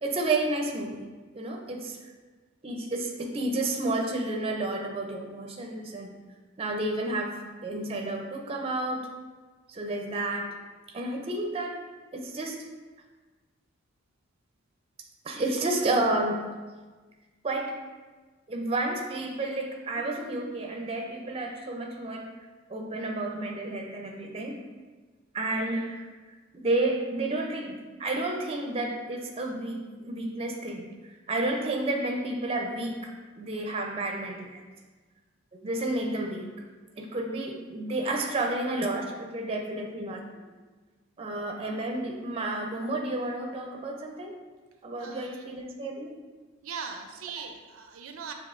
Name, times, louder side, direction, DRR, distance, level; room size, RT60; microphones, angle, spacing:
voice 1, 0.0-1.0 1.3-2.0 2.6-6.1 6.6-9.1 9.7-10.5 10.9-11.8 12.1-12.6 15.2-16.4 17.4-17.7 18.5-22.3 22.7-24.6 25.3-26.1 26.5-27.7 28.0-33.1 33.4-34.6 35.6-36.5 37.0-40.3 41.2-44.4 44.8-46.1, right 2 dB, 30° right, 1 dB, 0.5 m, -31 dB
voice 2, 45.0-45.5 46.6-48.3, right 6 dB, 85° right, 5 dB, 0.5 m, -40 dB
6.9 x 3.0 x 2.5 m, 1.3 s
head